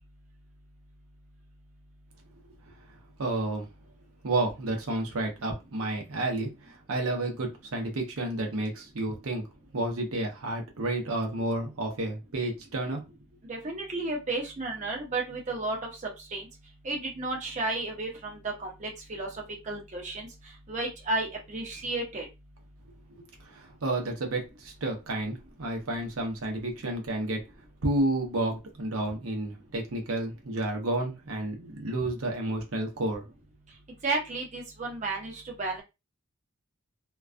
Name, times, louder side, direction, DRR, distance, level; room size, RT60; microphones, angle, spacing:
voice 1, 3.2-3.7 4.2-9.4 9.7-13.1 23.4-27.4 27.8-33.2, right 2 dB, 80° right, 0.7 m, -31 dB
voice 2, 13.5-15.8 16.3-16.4 16.8-19.3 19.7-20.3 20.7-22.3 34.0-35.8, right 2 dB, 35° right, 0.6 m, -32 dB
2.3 x 2.2 x 2.4 m
head